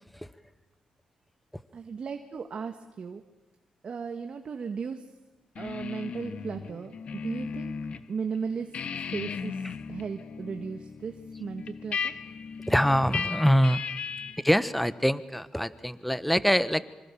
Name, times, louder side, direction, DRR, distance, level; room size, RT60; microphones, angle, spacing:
voice 1, 1.7-3.2 3.8-5.1 5.6-7.8 8.1-12.1, right 5 dB, 50° right, 6 dB, 1.7 m, -36 dB
sound 1, 5.6-8.0 8.4-14.5, left 6 dB, 55° left, 1.5 m, -36 dB
voice 2, 12.7-13.8 14.4-16.8, equal, 5° left, 15 dB, 1.1 m, -24 dB
26.5 x 25.5 x 7.0 m, 1.1 s
cardioid pair, 90°, 2 cm